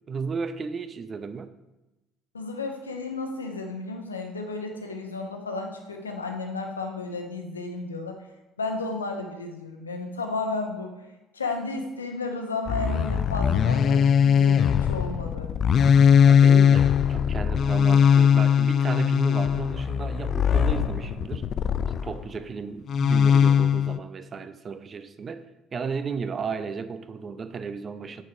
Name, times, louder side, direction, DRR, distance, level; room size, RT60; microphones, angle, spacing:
voice 1, 0.1-1.5 16.2-21.5 22.0-25.4 25.7-28.2, right 5 dB, 35° right, 11 dB, 0.6 m, -34 dB
voice 2, 2.3-8.2 8.6-10.9 11.3-15.5, left 3 dB, 85° left, 3 dB, 0.9 m, -33 dB
sound 1, 12.7-22.2 22.9-24.0, left 7 dB, 45° left, 0.3 m, -20 dB
7.0 x 6.0 x 4.9 m, 1.0 s
figure-of-eight pair, 55°, 0 cm